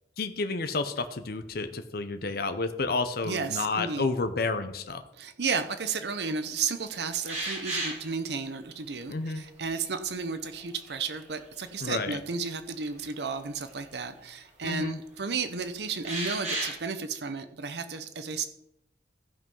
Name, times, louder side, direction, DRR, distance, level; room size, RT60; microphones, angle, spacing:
voice 1, 0.2-5.0 9.1-9.4 11.8-12.2 14.6-15.0, left 3 dB, 60° left, 8 dB, 0.8 m, -30 dB
voice 2, 3.2-4.1 5.2-18.5, right 5 dB, 70° right, 10 dB, 0.8 m, -33 dB
sound 1, 7.3-8.1 9.6-9.7 10.6-11.4 11.8-11.9 13.8-13.9 16.0-16.8, right 2 dB, 40° right, 3.8 m, -33 dB
15.0 x 5.5 x 5.5 m, 0.85 s
head